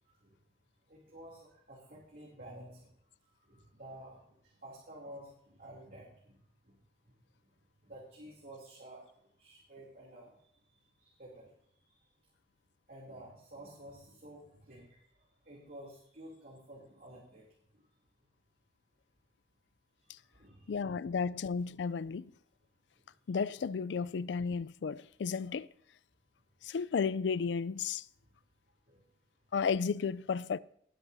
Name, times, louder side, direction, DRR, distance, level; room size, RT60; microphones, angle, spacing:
voice 1, 0.9-2.9 3.2-6.8 7.1-7.2 7.8-9.1 9.4-11.5 11.9-12.0 12.9-15.0 15.4-17.5 17.7-17.9 20.0-20.8 23.0-23.1 28.9-29.1, right 1 dB, 55° right, 2.9 m, -52 dB
voice 2, 20.7-22.3 23.3-25.7 26.6-28.0 29.5-30.6, left 5 dB, 80° left, 0.4 m, -33 dB
19.0 x 10.5 x 2.7 m
head